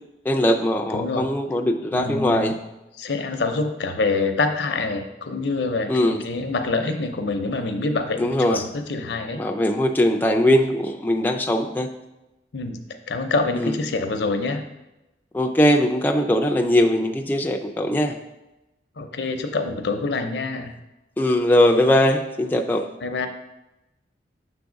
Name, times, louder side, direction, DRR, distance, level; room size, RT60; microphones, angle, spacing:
voice 1, 0.3-2.6 5.9-6.2 8.2-8.6 9.4-11.9 13.6-13.7 15.3-18.2 21.2-22.8, left 1 dB, 10° left, 3 dB, 0.3 m, -20 dB
voice 2, 0.9-1.3 1.9-2.6 3.0-9.4 12.5-12.8 13.1-14.6 19.0-20.7 23.0-23.3, left 3 dB, 75° left, 6 dB, 0.6 m, -26 dB
6.7 x 3.5 x 5.1 m, 0.97 s
head